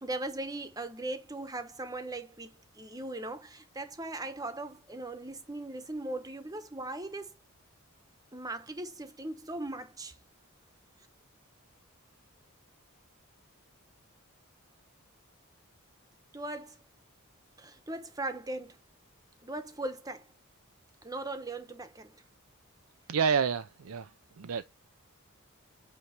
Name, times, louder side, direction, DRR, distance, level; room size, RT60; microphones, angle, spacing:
voice 1, 0.0-7.3 8.3-10.2 16.3-16.8 17.6-18.8 19.4-20.3 21.0-22.2, right 2 dB, 15° right, 1.0 m, -39 dB
voice 2, 23.1-24.6, right 6 dB, 85° right, 0.5 m, -29 dB
8.4 x 3.1 x 5.8 m
head